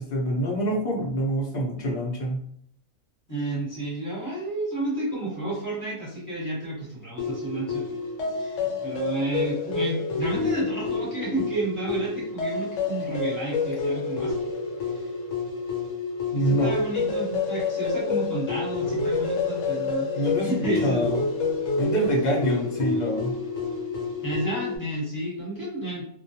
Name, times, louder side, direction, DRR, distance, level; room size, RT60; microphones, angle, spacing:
voice 1, 0.0-2.4 16.3-16.7 20.1-20.5 20.8-21.2 21.8-23.4, equal, 50° left, -2 dB, 0.6 m, -25 dB
voice 2, 3.3-7.8 8.3-14.4 14.9-15.0 16.3-21.1 24.2-26.0, right 2 dB, 15° left, -8 dB, 0.9 m, -31 dB
sound 1, 7.2-24.8, left 4 dB, 75° left, 1.0 m, -28 dB
2.3 x 2.2 x 2.7 m, 0.68 s
omnidirectional pair, 1.4 m